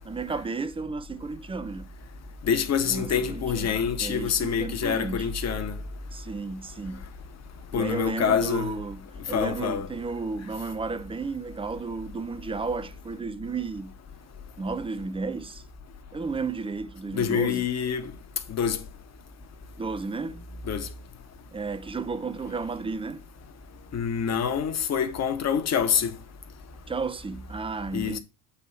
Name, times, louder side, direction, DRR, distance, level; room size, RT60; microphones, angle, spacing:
voice 1, 0.0-1.9 2.8-5.3 6.1-7.0 7.7-13.9 14.6-15.6 16.1-17.7 19.8-20.4 21.5-23.2 26.9-28.2, right 4 dB, 10° right, 0.5 m, -33 dB
voice 2, 2.5-5.8 7.7-8.7 9.3-9.9 17.1-18.1 18.5-18.8 20.7-20.9 23.9-26.1 27.9-28.2, left 7 dB, 35° left, 1.3 m, -26 dB
8.4 x 3.0 x 5.8 m
hypercardioid pair, 70°, 45 cm